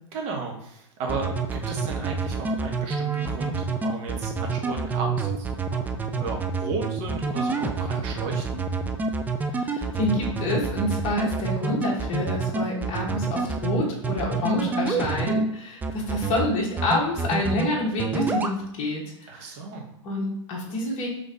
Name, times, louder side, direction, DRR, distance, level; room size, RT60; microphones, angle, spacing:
voice 1, 0.1-8.6 16.0-16.2 19.3-19.9, right 4 dB, 40° right, 1 dB, 1.2 m, -35 dB
sound 1, 1.1-15.4 15.8-16.5 16.8-17.7 18.0-18.5, right 4 dB, 10° right, 0.3 m, -27 dB
voice 2, 9.5-19.4 20.0-21.1, left 2 dB, 40° left, -3 dB, 1.5 m, -28 dB
3.9 x 3.3 x 3.9 m, 0.77 s
hypercardioid pair, 120°, 17 cm